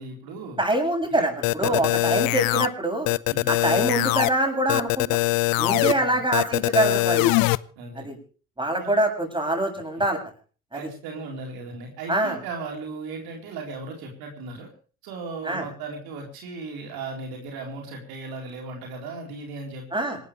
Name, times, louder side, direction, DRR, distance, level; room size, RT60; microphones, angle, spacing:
voice 1, 0.0-0.6 1.1-1.3 1.6-1.9 3.3-3.6 5.7-6.2 7.8-8.1 8.8-9.0 10.7-14.7 15.0-20.1, right 3 dB, 70° right, 1 dB, 4.2 m, -37 dB
voice 2, 0.6-3.1 3.5-5.2 5.6-7.4 8.0-8.2 8.6-10.2 10.7-10.8 12.1-12.4 15.4-15.6 19.9-20.2, right 1 dB, 15° right, 3 dB, 7.7 m, -24 dB
sound 1, 1.4-2.7 3.1-4.3 4.7-5.9 6.3-7.6, left 22 dB, 65° left, 0.7 m, -22 dB
26.5 x 13.5 x 3.3 m, 0.38 s
hypercardioid pair, 50°, 37 cm